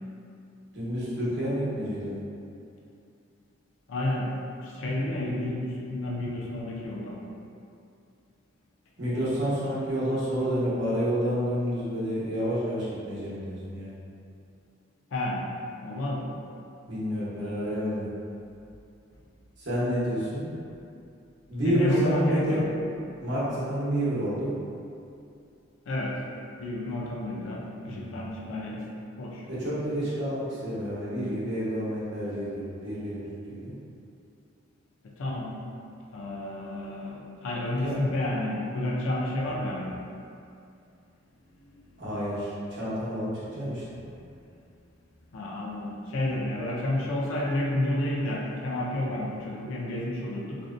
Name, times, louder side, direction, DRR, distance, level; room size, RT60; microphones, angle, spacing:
voice 1, 0.7-2.2 9.0-14.0 16.8-18.1 19.6-20.5 21.5-22.6 23.2-24.5 27.8-28.2 29.5-33.7 37.8-38.0 42.0-43.8, equal, 60° right, -10 dB, 0.8 m, -29 dB
voice 2, 3.9-4.3 4.6-7.2 15.1-15.5 15.8-16.3 21.6-22.7 25.9-26.1 26.6-28.9 29.2-29.5 35.2-35.5 36.1-40.0 41.6-41.8 45.3-50.6, left 1 dB, 90° left, -3 dB, 0.5 m, -30 dB
2.6 x 2.1 x 2.4 m, 2.5 s
head